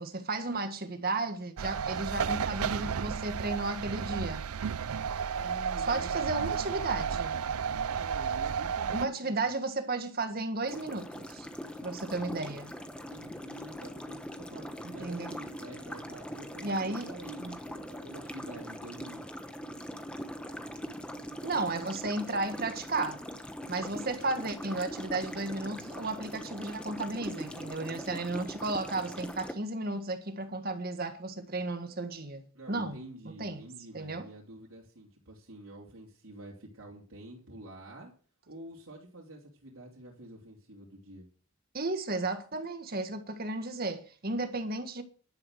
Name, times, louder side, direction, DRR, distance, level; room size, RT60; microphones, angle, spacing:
voice 1, 0.0-4.5 5.9-7.4 8.9-11.5 11.8-12.7 14.8-15.4 16.6-17.1 17.4-17.6 21.4-23.2 23.7-32.4 32.7-33.0 33.4-33.6 33.9-34.3 41.7-45.0, right 2 dB, 45° right, 1.7 m, -34 dB
sound 1, 1.6-4.2, right 2 dB, 15° right, 2.5 m, -53 dB
sound 2, 1.6-9.1, right 7 dB, 90° right, 0.5 m, -32 dB
voice 2, 5.3-6.3 7.3-9.5 12.9-19.2 32.5-38.1 38.5-41.3, right 1 dB, 75° right, 3.1 m, -48 dB
sound 3, 10.7-29.5, equal, 5° left, 1.0 m, -42 dB
11.5 x 9.6 x 6.5 m
head